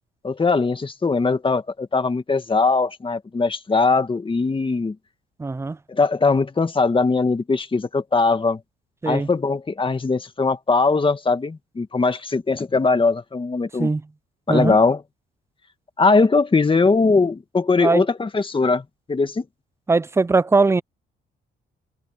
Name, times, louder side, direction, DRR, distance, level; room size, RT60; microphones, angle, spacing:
voice 1, 0.2-5.0 5.9-8.6 9.1-13.9 14.5-15.0 16.0-19.4, left 4 dB, 25° left, 1.9 m, -20 dB
voice 2, 5.4-5.8 9.0-9.3 13.8-14.0 14.5-14.8 17.8-18.0 19.9-20.8, right 3 dB, 15° right, 0.5 m, -20 dB
cardioid pair, 90°, 20 cm